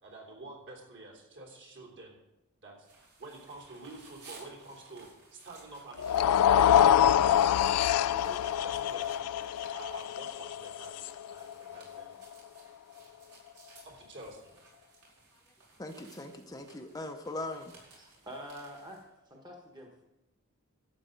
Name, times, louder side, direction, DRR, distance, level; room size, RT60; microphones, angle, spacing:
voice 1, 0.0-2.2 2.6-9.3 9.7-12.1 13.8-14.6, right 2 dB, 55° right, -1 dB, 3.3 m, -49 dB
sound 1, 2.8-19.0, right 3 dB, 85° right, 4.5 m, -58 dB
sound 2, 6.0-12.2, left 10 dB, 85° left, 0.3 m, -25 dB
voice 2, 15.8-17.7, left 2 dB, 15° left, 4 dB, 0.7 m, -40 dB
voice 3, 18.0-19.0 19.2-19.9, equal, 20° right, 0 dB, 1.3 m, -46 dB
12.5 x 8.3 x 5.2 m, 0.94 s
head